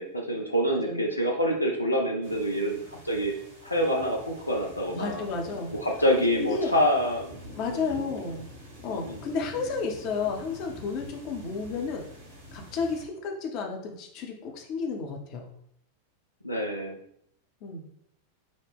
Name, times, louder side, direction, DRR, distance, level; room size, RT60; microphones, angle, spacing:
voice 1, 0.0-3.3 3.6-5.2 5.8-7.4 7.7-8.2 8.9-9.2 16.4-17.0, equal, 85° left, 0 dB, 0.5 m, -27 dB
sound 1, 2.2-13.1, equal, 60° right, 1.5 m, -47 dB
voice 2, 4.9-5.7 6.2-6.7 7.6-8.5 8.8-12.0 12.5-15.5 17.6-17.8, left 4 dB, 40° left, 2 dB, 0.7 m, -32 dB
6.2 x 2.1 x 3.5 m, 0.71 s
figure-of-eight pair, 90°, 0 cm